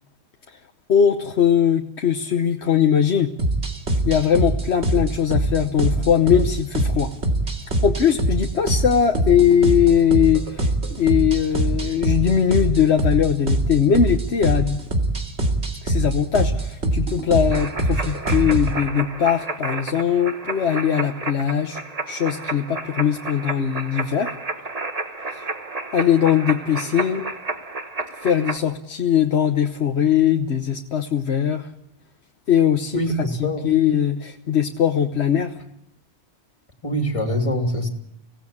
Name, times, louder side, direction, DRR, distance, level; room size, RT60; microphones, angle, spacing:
voice 1, 0.9-3.3 4.0-7.1 7.8-14.8 15.8-21.8 22.1-24.3 25.3-25.5 25.9-27.2 28.2-31.7 32.5-35.5, left 8 dB, 75° left, 5 dB, 1.3 m, -20 dB
sound 1, 3.4-18.8, right 1 dB, 75° right, 2.7 m, -23 dB
sound 2, 17.5-28.6, right 3 dB, 35° right, 1.5 m, -31 dB
voice 2, 32.9-33.6 36.8-37.9, equal, 30° left, 3 dB, 3.1 m, -24 dB
25.0 x 17.5 x 8.6 m, 0.81 s
omnidirectional pair, 1.1 m